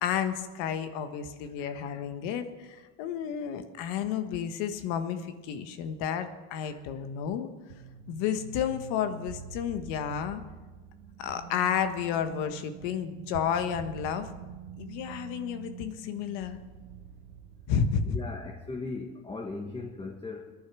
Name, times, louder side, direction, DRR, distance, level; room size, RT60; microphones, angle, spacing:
voice 1, 0.0-7.5 8.1-10.4 11.2-14.3 14.8-16.6 17.7-18.2, left 8 dB, 70° left, 8 dB, 1.5 m, -31 dB
sound 1, 7.7-19.0, right 7 dB, 90° right, 1.6 m, -46 dB
voice 2, 18.0-20.5, left 3 dB, 15° left, 0 dB, 1.4 m, -39 dB
19.0 x 10.5 x 6.2 m, 1.3 s
supercardioid pair, 115°, 32 cm